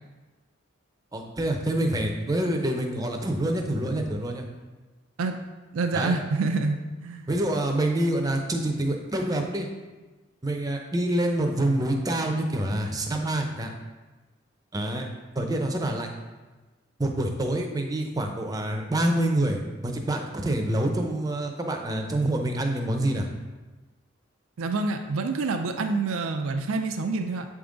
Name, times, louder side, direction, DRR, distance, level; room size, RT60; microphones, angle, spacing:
voice 1, 1.1-4.4 5.9-6.2 7.3-9.7 10.4-13.7 14.7-15.0 15.3-16.1 17.0-23.3, right 1 dB, 20° right, 3 dB, 0.5 m, -26 dB
voice 2, 5.7-7.3 24.6-27.5, right 3 dB, 90° right, 6 dB, 0.4 m, -27 dB
7.7 x 3.6 x 3.8 m, 1.2 s
head